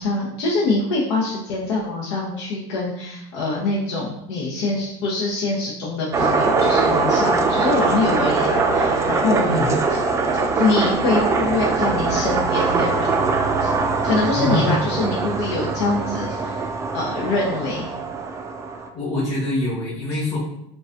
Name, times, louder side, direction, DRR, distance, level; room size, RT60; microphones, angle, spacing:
voice 1, 0.0-9.5 9.9-10.0 10.3-13.1 13.6-13.7 14.0-16.6 16.9-17.9, left 3 dB, 75° left, -5 dB, 0.8 m, -24 dB
sound 1, 6.1-18.9, right 4 dB, 20° right, 0.3 m, -22 dB
voice 2, 14.3-14.7 18.9-20.4, left 2 dB, 35° left, -11 dB, 1.5 m, -24 dB
3.9 x 2.2 x 2.5 m, 0.79 s
supercardioid pair, 115°, 15 cm